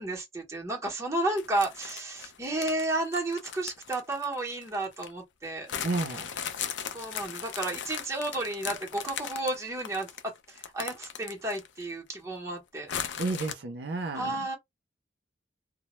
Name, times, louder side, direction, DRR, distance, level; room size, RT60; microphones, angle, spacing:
voice 1, 0.0-5.7 6.9-12.9 14.1-14.6, right 2 dB, 15° right, 0.7 m, -32 dB
sound 1, 1.4-5.1 5.7-11.8 12.1-12.2 12.9-13.5, left 8 dB, 75° left, 0.4 m, -38 dB
voice 2, 5.8-6.3 13.2-14.5, right 3 dB, 60° right, 0.5 m, -32 dB
2.1 x 2.0 x 2.9 m
head